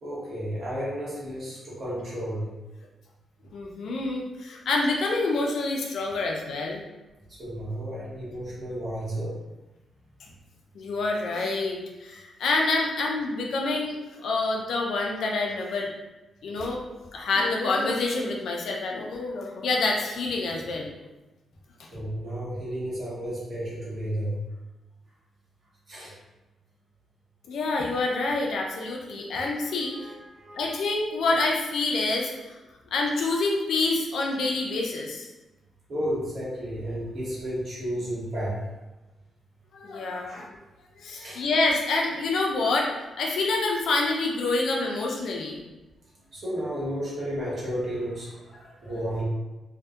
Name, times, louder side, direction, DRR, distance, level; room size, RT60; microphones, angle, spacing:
voice 1, 0.0-2.5 7.4-9.4 21.9-24.4 25.9-26.1 29.9-30.7 35.9-38.6 40.2-40.5 41.2-41.4 46.3-49.2, equal, 40° right, -7 dB, 0.8 m, -32 dB
voice 2, 3.5-6.8 10.7-15.9 16.4-16.8 17.1-20.9 27.5-29.9 30.6-32.3 32.9-35.3 39.7-40.5 41.0-42.9 43.2-45.6, left 3 dB, 65° left, 0 dB, 0.4 m, -27 dB
2.6 x 2.1 x 2.3 m, 1.1 s
wide cardioid pair, 175°, 0 cm